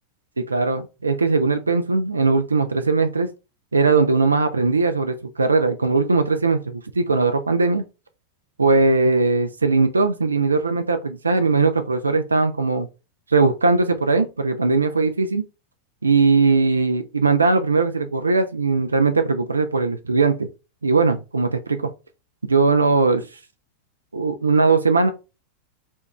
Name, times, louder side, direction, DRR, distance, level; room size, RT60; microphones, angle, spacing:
voice 1, 0.4-3.3 3.7-7.8 8.6-12.9 13.3-15.4 16.0-20.5 20.8-21.9 22.5-23.3 24.1-25.1, right 3 dB, 75° right, 0.4 m, -19 dB
4.3 x 2.3 x 2.9 m
figure-of-eight pair, 90°, 0 cm